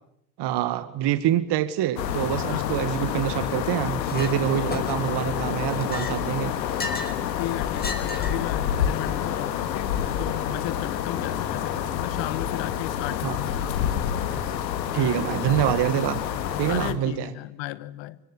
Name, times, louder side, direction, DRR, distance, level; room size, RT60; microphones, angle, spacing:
voice 1, 0.4-6.5 13.2-13.4 14.9-16.2 16.6-17.3, right 12 dB, 55° right, 1.9 m, -25 dB
sound 1, 2.0-16.9, left 9 dB, 85° left, 2.2 m, -28 dB
voice 2, 2.5-2.9 7.3-13.9 14.9-15.2 16.4-18.2, left 16 dB, 60° left, 1.5 m, -35 dB
Chink clink, 4.0-4.3 4.7-5.2 5.7-7.2 7.7-8.5, left 2 dB, 20° left, 5.2 m, -35 dB
25.0 x 23.0 x 10.0 m
hypercardioid pair, 75°, 49 cm